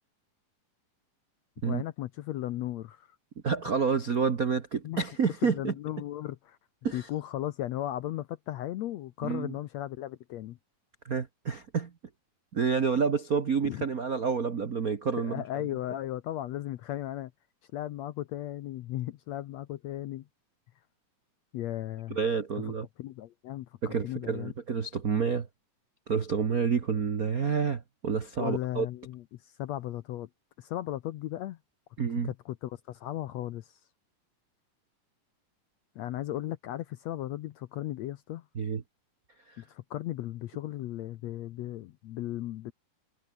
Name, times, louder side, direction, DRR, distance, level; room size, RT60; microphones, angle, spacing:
voice 1, 1.6-3.1 4.8-5.0 5.4-6.6 6.9-10.6 13.6-13.8 15.2-17.3 17.7-20.2 21.5-22.2 23.0-24.5 28.4-30.3 30.6-31.6 32.2-33.8 35.9-38.4 39.6-42.7, left 13 dB, 75° left, 1.7 m, -36 dB
voice 2, 3.4-5.7 6.8-7.1 9.2-9.5 11.0-11.9 12.5-15.4 22.1-22.9 23.8-25.5 26.1-28.9 32.0-32.3 38.5-38.8, right 6 dB, 60° right, 0.9 m, -29 dB
omnidirectional pair, 3.8 m